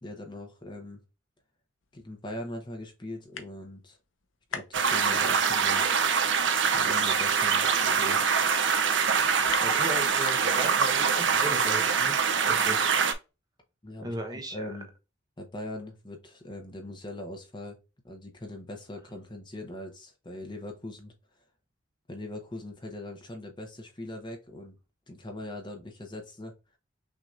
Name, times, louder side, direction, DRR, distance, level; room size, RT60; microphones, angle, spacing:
voice 1, 0.0-1.0 1.9-4.0 4.5-5.9 6.7-8.3 13.8-14.9 15.4-17.8 18.0-21.1 22.1-24.8 25.1-26.8, left 1 dB, 25° left, 1.1 m, -41 dB
sound 1, 1.8-1.9 2.6-2.7 2.9-3.0 3.2-3.8 4.2-5.3 5.6-10.7, left 6 dB, 80° left, 0.8 m, -41 dB
sound 2, 4.7-13.1, right 6 dB, 65° right, 0.7 m, -24 dB
voice 2, 9.6-12.2 12.5-12.9 14.0-14.7, right 2 dB, 20° right, 1.0 m, -36 dB
6.1 x 3.0 x 2.5 m
head